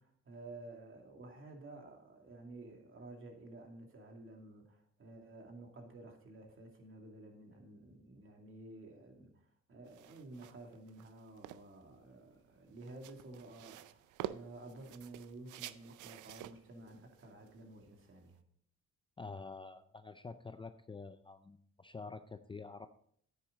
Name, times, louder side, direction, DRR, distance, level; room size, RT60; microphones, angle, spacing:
voice 1, 0.0-18.4, right 2 dB, 45° right, 2 dB, 2.5 m, -52 dB
sound 1, 9.9-18.4, right 13 dB, 80° right, 0.5 m, -50 dB
voice 2, 19.2-22.9, left 4 dB, 15° left, 10 dB, 0.5 m, -48 dB
9.7 x 9.1 x 3.9 m, 0.64 s
cardioid pair, 90°, 30 cm